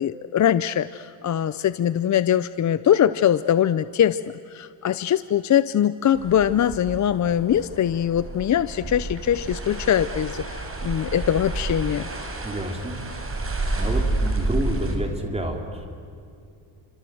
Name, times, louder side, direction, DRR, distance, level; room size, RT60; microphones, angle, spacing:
voice 1, 0.0-4.2 4.5-12.1, left 10 dB, 40° left, 14 dB, 0.6 m, -22 dB
sound 1, 6.1-15.0, right 2 dB, 30° right, 4.8 m, -30 dB
voice 2, 12.4-13.0 13.8-15.9, right 1 dB, 15° right, 3 dB, 3.7 m, -29 dB
29.0 x 26.0 x 7.8 m, 2.5 s
cardioid pair, 145°, 46 cm